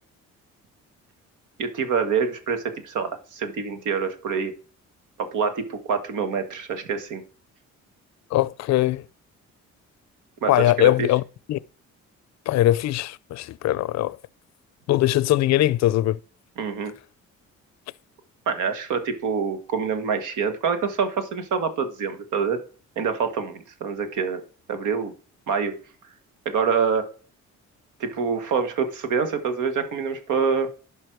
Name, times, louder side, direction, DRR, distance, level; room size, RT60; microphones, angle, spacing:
voice 1, 1.6-4.5 5.2-7.2 10.4-11.1 16.6-16.9 18.5-22.6 22.9-24.4 24.7-25.1 25.5-25.8 26.4-27.1 28.0-30.7, right 6 dB, 85° right, 1.5 m, -26 dB
voice 2, 8.3-9.0 10.5-11.2 11.5-11.6 12.5-14.2 14.9-16.2, left 14 dB, 60° left, 0.5 m, -21 dB
11.0 x 5.5 x 4.6 m
cardioid pair, 90°, 30 cm